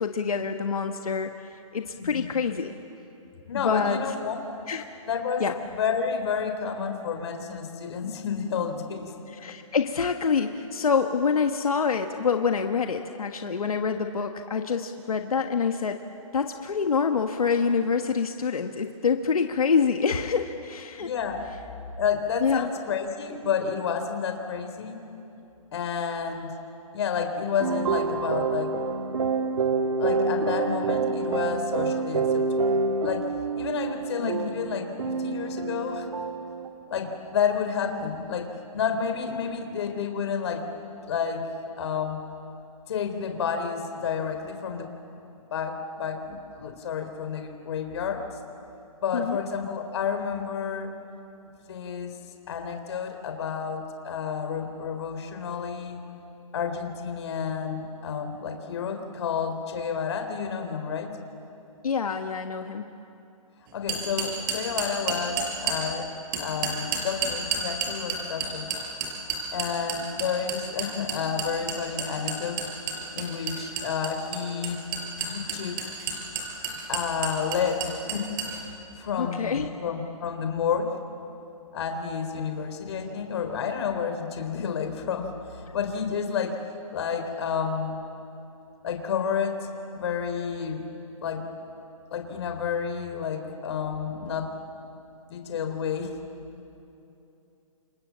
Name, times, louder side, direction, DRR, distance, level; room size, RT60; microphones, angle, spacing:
voice 1, 0.0-2.7 3.5-4.0 4.7-4.9 5.4-5.5 9.3-16.0 16.3-21.1 22.4-22.7 34.2-34.5 49.1-49.4 61.8-62.9 79.2-79.7, left 5 dB, 90° left, 5 dB, 1.5 m, -26 dB
voice 2, 2.0-2.3 3.5-4.4 5.1-5.4 5.7-9.1 21.0-21.4 22.0-25.0 25.7-26.5 26.9-28.7 30.0-33.3 33.6-36.1 36.9-40.6 41.1-41.5 41.8-42.2 42.9-44.9 45.5-48.2 49.0-50.9 51.7-52.1 52.5-56.0 56.5-61.1 63.7-66.1 66.4-68.7 69.5-72.7 73.1-74.8 75.3-75.8 76.9-78.3 78.6-78.7 79.0-81.0 81.7-88.0 88.8-89.6 89.9-90.8 91.2-91.5 92.1-94.5 95.3-96.1, left 6 dB, 50° left, 6 dB, 3.7 m, -30 dB
sound 1, 27.6-36.7, right 4 dB, 65° right, 1.9 m, -27 dB
sound 2, 63.9-65.8 66.3-78.6, right 6 dB, 40° right, 6.1 m, -30 dB
29.0 x 27.0 x 7.5 m, 2.9 s
hypercardioid pair, 155°, 18 cm